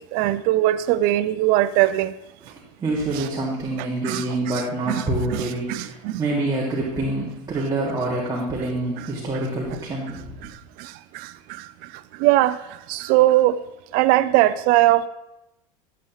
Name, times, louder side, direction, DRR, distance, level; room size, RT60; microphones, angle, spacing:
voice 1, 0.0-2.1 3.1-3.3 3.8-6.2 9.0-9.5 10.4-13.6 13.9-15.1, right 15 dB, 60° right, 15 dB, 0.5 m, -22 dB
voice 2, 2.8-10.4, right 2 dB, 20° right, -5 dB, 2.1 m, -26 dB
12.5 x 7.7 x 3.1 m, 0.92 s
supercardioid pair, 115°, 18 cm